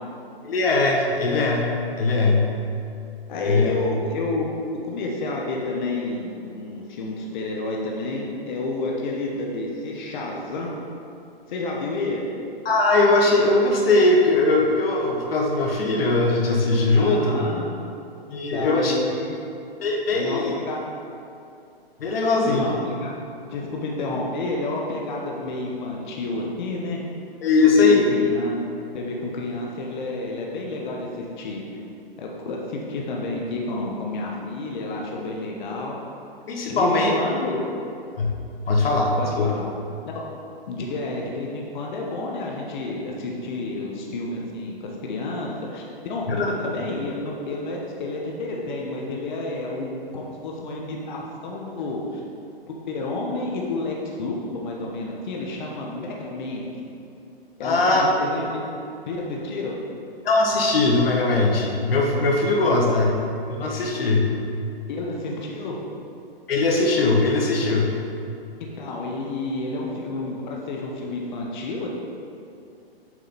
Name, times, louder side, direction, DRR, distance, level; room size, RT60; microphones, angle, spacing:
voice 1, 0.4-1.7 2.0-2.5 3.4-3.7 12.6-17.4 18.3-18.9 19.8-20.5 22.0-22.7 27.4-28.0 36.5-37.1 38.2-38.3 38.7-39.5 46.3-46.5 57.6-58.1 60.2-63.1 63.5-64.3 66.5-67.9, left 3 dB, 70° left, 0 dB, 1.2 m, -20 dB
voice 2, 3.3-4.5 4.8-10.7 11.5-12.3 16.9-17.7 18.3-19.4 20.1-20.8 22.5-23.1 23.5-27.0 27.6-28.6 28.9-31.6 32.2-36.0 36.7-37.6 39.2-39.6 40.1-40.2 40.7-44.7 45.0-52.2 52.7-56.7 57.6-58.6 59.1-59.7 62.7-62.8 64.9-65.8 68.8-71.9, left 2 dB, 50° left, -2 dB, 1.2 m, -30 dB
7.5 x 5.1 x 4.1 m, 2.6 s
hypercardioid pair, 145°, 31 cm